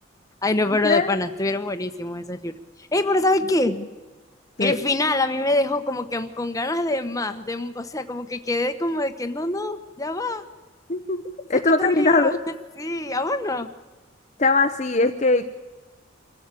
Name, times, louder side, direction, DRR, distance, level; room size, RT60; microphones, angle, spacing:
voice 1, 0.4-2.5 2.9-3.8 4.6-10.4 11.5-12.4 12.8-13.7, left 2 dB, 20° left, 7 dB, 1.2 m, -25 dB
voice 2, 10.9-11.2 11.5-12.4 14.4-15.5, left 3 dB, 35° left, 6 dB, 0.9 m, -20 dB
25.5 x 14.5 x 8.5 m, 1.3 s
head